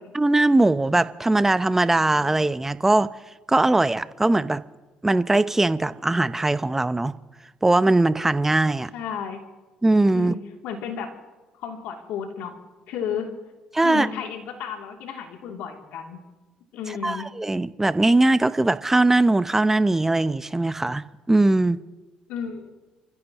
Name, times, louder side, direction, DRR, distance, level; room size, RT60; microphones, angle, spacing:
voice 1, 0.1-3.1 3.5-4.6 5.0-7.1 7.6-8.9 9.8-10.3 13.7-14.1 17.0-21.8, right 2 dB, 15° right, 0.7 m, -20 dB
voice 2, 8.9-9.4 10.1-11.1 11.6-12.6 12.9-13.4 13.8-16.2 16.7-17.3 22.3-22.7, left 7 dB, 80° left, 2.9 m, -33 dB
29.5 x 15.5 x 3.0 m
supercardioid pair, 75°, 3 cm